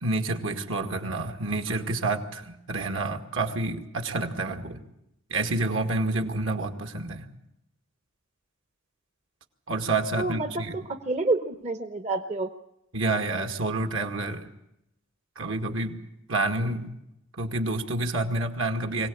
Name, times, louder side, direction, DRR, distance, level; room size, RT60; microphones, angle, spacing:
voice 1, 0.0-4.8 5.3-7.3 9.7-10.8 12.9-14.5 15.4-16.0 16.3-16.9 17.4-19.1, right 2 dB, 70° right, 5 dB, 2.1 m, -28 dB
voice 2, 10.2-12.5, right 2 dB, 35° right, 7 dB, 1.0 m, -28 dB
23.5 x 17.5 x 8.6 m, 0.83 s
head